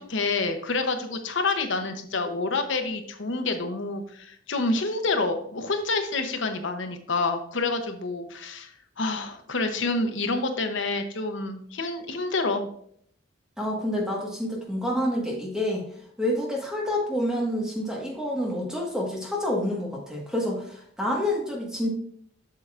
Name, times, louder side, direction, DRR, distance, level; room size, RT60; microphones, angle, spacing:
voice 1, 0.0-8.7 9.0-12.7, left 3 dB, 75° left, 6 dB, 0.9 m, -28 dB
voice 2, 13.6-15.8 16.2-21.9, left 1 dB, 5° right, -2 dB, 1.4 m, -28 dB
7.5 x 6.8 x 2.5 m, 0.65 s
head